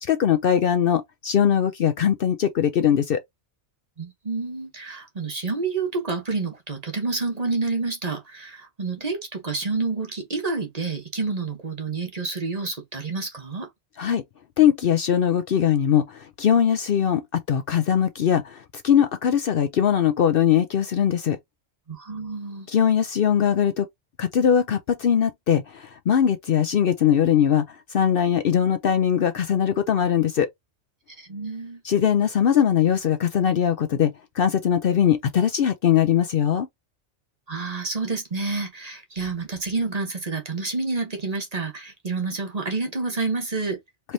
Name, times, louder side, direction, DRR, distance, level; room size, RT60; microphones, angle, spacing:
voice 1, 0.0-3.2 14.0-14.2 14.6-21.4 22.7-23.9 24.2-30.5 31.8-36.7, left 9 dB, 60° left, 0.7 m, -21 dB
voice 2, 4.0-13.7 21.9-22.7 31.2-31.8 37.5-43.8, right 3 dB, 35° right, 1.0 m, -29 dB
4.6 x 3.1 x 2.6 m
omnidirectional pair, 1.2 m